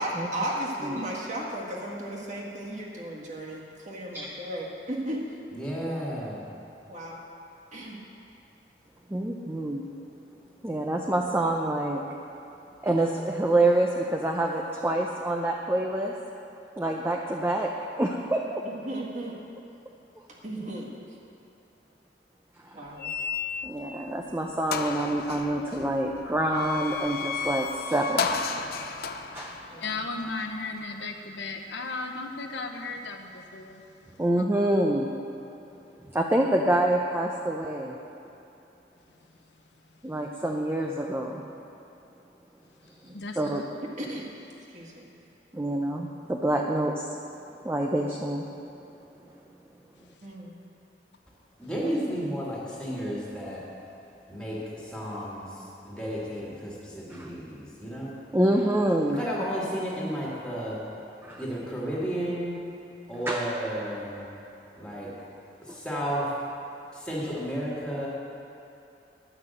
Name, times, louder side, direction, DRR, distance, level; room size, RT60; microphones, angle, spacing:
voice 1, 0.0-5.2 6.9-7.2 7.7-8.0 18.6-19.3 20.3-20.9 22.7-23.1 29.7-30.0 43.0-43.2 44.0-44.3 44.7-45.1 50.2-50.6, right 1 dB, 45° right, -4 dB, 1.8 m, -35 dB
voice 2, 5.5-6.4 51.6-53.6 54.3-58.2 59.1-60.8 61.4-62.6 63.1-64.3 64.8-65.1 65.6-66.3 66.9-68.1, equal, 5° left, -6 dB, 2.2 m, -33 dB
voice 3, 9.1-9.9 10.6-12.0 12.8-16.1 16.8-18.6 22.6-22.9 23.6-28.3 29.3-29.6 34.2-35.1 36.0-37.9 40.0-41.4 43.4-43.7 45.5-47.2 47.6-48.5 57.1-57.3 58.3-59.2 61.2-61.4 63.3-63.4 65.7-65.8, right 1 dB, 15° right, 0 dB, 0.5 m, -26 dB
sound 1, 23.0-23.9 24.3-24.4 24.7-30.8, left 5 dB, 60° left, 0.5 m, -33 dB
voice 4, 29.8-33.8 43.1-43.6, left 3 dB, 85° left, 4 dB, 0.9 m, -35 dB
11.0 x 6.0 x 7.8 m, 2.8 s
head